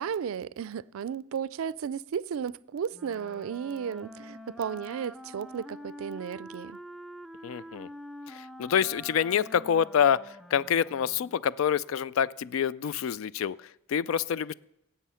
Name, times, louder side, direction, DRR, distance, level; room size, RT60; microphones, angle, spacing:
voice 1, 0.0-6.8, right 7 dB, 85° right, 0.4 m, -34 dB
Wind instrument woodwind instrument, 2.9-11.5, equal, ahead, 0.3 m, -46 dB
voice 2, 7.4-7.9 8.3-14.5, left 8 dB, 80° left, 0.3 m, -27 dB
17.5 x 7.1 x 5.6 m
head